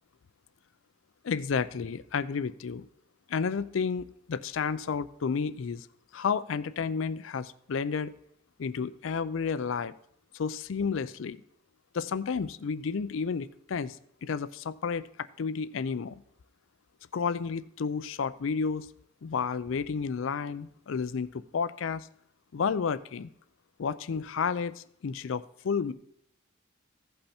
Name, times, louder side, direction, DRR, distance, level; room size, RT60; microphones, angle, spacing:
voice 1, 1.2-2.9 3.3-5.9 6.1-8.1 8.6-9.9 10.3-11.4 11.9-14.0 14.2-16.2 17.1-18.9 19.2-22.1 22.5-23.3 23.8-25.9, left 5 dB, 75° left, 15 dB, 0.4 m, -31 dB
15.5 x 5.5 x 4.3 m, 0.69 s
head